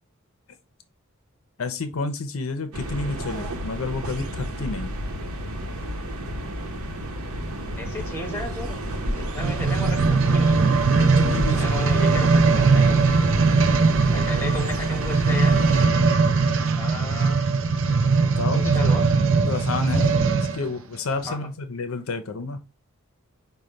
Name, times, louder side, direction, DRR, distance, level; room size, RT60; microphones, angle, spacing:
voice 1, 1.6-4.9 11.0-11.6 18.0-18.9 19.3-22.6, left 3 dB, 75° left, 0.6 m, -30 dB
sound 1, 2.7-15.9, equal, 85° right, 0.9 m, -31 dB
voice 2, 7.8-10.7 11.5-13.0 14.1-15.6 16.7-17.4 18.5-19.1 21.2-21.5, left 2 dB, 10° left, 1.0 m, -34 dB
sound 2, 9.3-20.6 21.3-21.4, right 4 dB, 65° right, 0.5 m, -20 dB
5.1 x 2.2 x 4.3 m
head